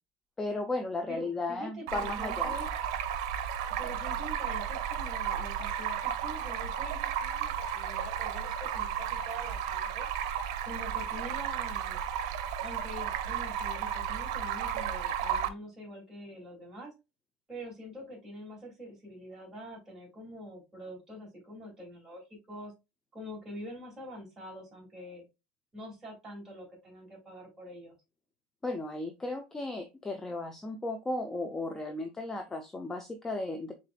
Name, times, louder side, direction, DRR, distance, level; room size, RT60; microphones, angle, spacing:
voice 1, 0.4-2.5 28.6-33.7, left 2 dB, 10° left, 5 dB, 0.5 m, -35 dB
voice 2, 1.1-2.7 3.8-10.1 10.6-12.0 12.6-16.9 17.5-22.7 23.1-25.2 25.7-27.9, equal, 15° right, -3 dB, 2.4 m, -45 dB
Stream, 1.9-15.5, right 9 dB, 80° right, 0.6 m, -33 dB
5.0 x 3.8 x 2.2 m, 0.25 s
cardioid pair, 155°, 3 cm